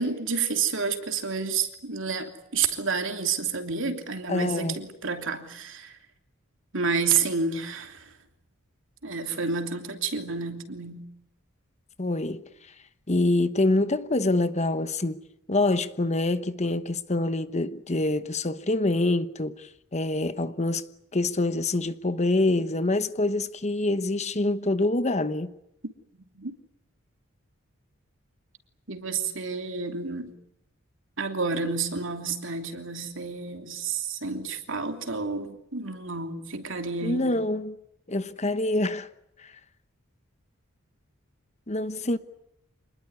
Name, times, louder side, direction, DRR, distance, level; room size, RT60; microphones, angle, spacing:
voice 1, 0.0-6.0 6.7-8.1 9.0-11.0 26.3-26.5 28.9-30.3 31.2-37.4, right 5 dB, 60° right, 3.1 m, -30 dB
voice 2, 4.3-4.7 12.0-12.4 13.1-15.2 15.5-20.8 21.1-25.5 37.0-37.7 38.1-39.1 39.4-39.5 41.7-42.2, left 2 dB, 30° left, 1.1 m, -26 dB
27.0 x 20.5 x 9.6 m
head